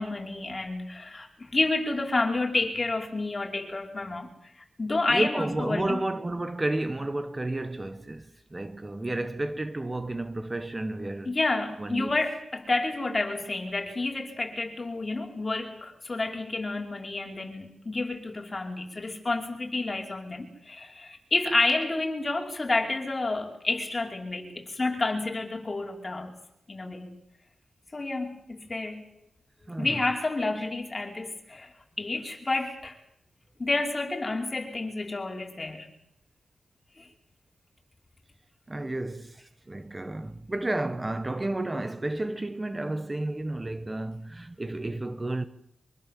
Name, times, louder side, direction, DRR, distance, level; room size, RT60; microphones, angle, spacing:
voice 1, 0.0-4.3 4.6-6.0 11.3-26.3 26.7-27.1 27.9-29.0 29.8-31.7 32.0-33.0 33.6-35.9 37.0-37.1, left 2 dB, 35° left, 5.3 m, -30 dB
voice 2, 5.1-11.4 11.8-12.1 29.7-30.0 38.7-45.4, right 2 dB, 25° right, 1.2 m, -31 dB
25.0 x 23.5 x 7.6 m
cardioid pair, 75°, 0 cm